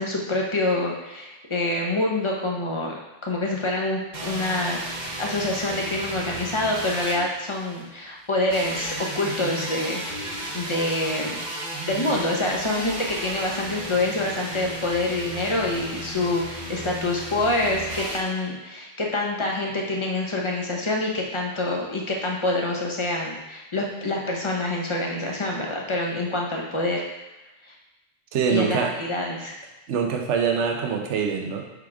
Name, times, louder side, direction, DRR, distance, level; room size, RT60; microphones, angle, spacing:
voice 1, 0.0-4.8 5.2-11.3 11.8-27.0 28.5-29.5, left 2 dB, 25° left, -1 dB, 1.0 m, -26 dB
sound 1, 4.1-7.9 8.5-18.2, right 1 dB, 40° right, 1.0 m, -34 dB
voice 2, 28.3-28.9 29.9-31.6, right 6 dB, 70° right, 2 dB, 1.1 m, -24 dB
6.8 x 3.7 x 4.8 m, 1.1 s
omnidirectional pair, 1.3 m